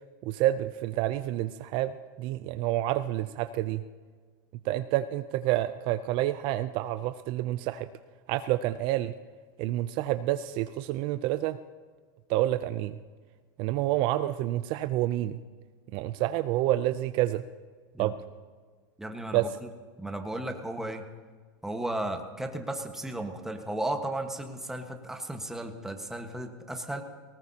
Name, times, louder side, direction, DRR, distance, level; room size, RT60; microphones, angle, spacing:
voice 1, 0.2-3.8 4.6-7.9 8.3-9.1 9.6-11.6 12.3-13.0 13.6-15.4 15.9-17.4 18.0-18.1 19.3-19.5, right 14 dB, 50° right, 11 dB, 0.5 m, -28 dB
voice 2, 19.0-19.7 20.0-21.0 21.6-27.0, right 1 dB, 5° right, 4 dB, 1.4 m, -35 dB
19.0 x 18.5 x 2.9 m, 1.5 s
supercardioid pair, 125°, 11 cm